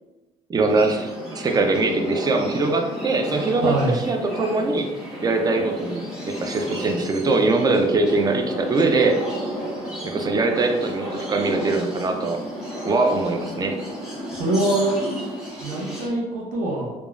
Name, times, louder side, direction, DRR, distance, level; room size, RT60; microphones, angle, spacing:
voice 1, 0.5-4.9 5.2-9.2 10.0-12.4 12.8-13.8, right 3 dB, 25° right, 5 dB, 0.4 m, -22 dB
sound 1, 0.7-16.1, equal, 5° right, 1.2 m, -32 dB
voice 2, 3.6-4.0 14.3-15.0 15.6-16.9, right 1 dB, 70° right, -3 dB, 0.7 m, -23 dB
2.9 x 2.2 x 2.4 m, 1.1 s
supercardioid pair, 80°, 14 cm